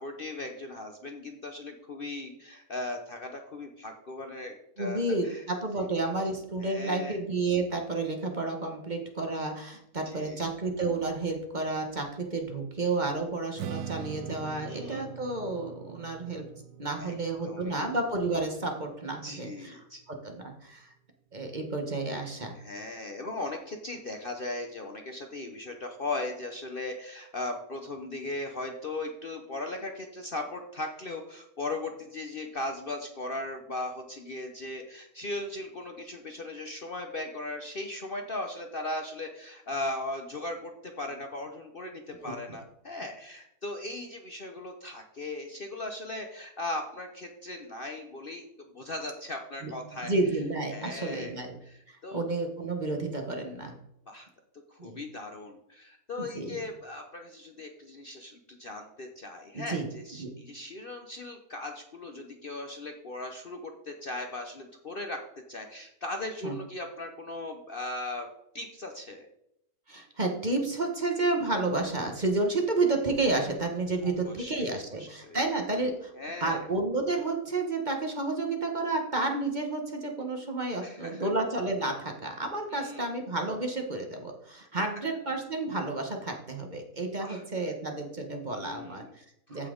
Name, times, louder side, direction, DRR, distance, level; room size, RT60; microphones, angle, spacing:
voice 1, 0.0-5.5 6.6-7.2 10.1-10.4 14.6-15.1 17.0-17.1 17.4-17.9 19.2-20.0 22.5-50.1 50.7-52.2 54.1-54.3 54.7-65.2 65.5-68.3 68.5-69.3 74.0-75.4 76.1-76.7 80.8-81.3 82.7-83.1 87.2-87.4 88.6-89.1 89.5-89.7, left 2 dB, 45° left, 4 dB, 0.8 m, -38 dB
voice 2, 4.8-16.4 16.8-19.7 20.1-20.9 21.3-22.5 42.2-42.3 49.6-49.7 50.0-51.6 51.9-53.7 54.8-55.0 56.2-56.6 59.5-59.9 60.2-60.3 66.4-66.5 69.9-76.1 76.4-89.7, right 2 dB, 30° right, 3 dB, 1.2 m, -31 dB
Strum, 13.6-19.9, right 9 dB, 85° right, 1.1 m, -43 dB
14.5 x 5.7 x 3.8 m, 0.80 s
omnidirectional pair, 1.6 m